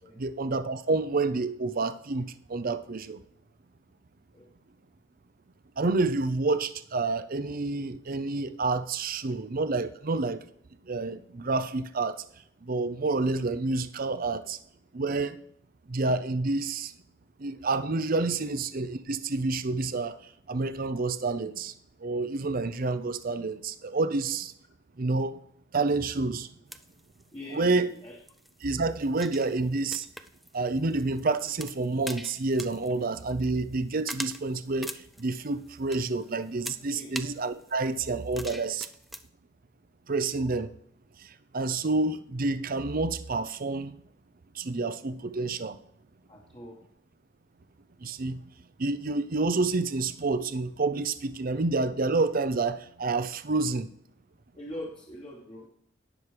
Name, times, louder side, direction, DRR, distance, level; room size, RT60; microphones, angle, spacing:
voice 1, 0.2-3.2 5.8-10.4 10.8-12.2 12.6-14.6 14.9-15.4 15.9-16.9 17.4-21.7 22.0-24.5 25.0-25.4 25.7-26.5 27.5-27.9 28.6-30.1 30.5-38.9 40.1-40.7 41.2-44.0 44.5-45.8 48.0-48.5 48.8-53.9, right 3 dB, 45° right, 0.6 m, -29 dB
sound 1, 26.7-39.3, equal, ahead, 0.4 m, -44 dB
voice 2, 27.3-28.2 36.9-37.1 46.3-46.8 54.5-55.7, left 1 dB, 25° left, 1.4 m, -43 dB
18.0 x 6.2 x 3.4 m
head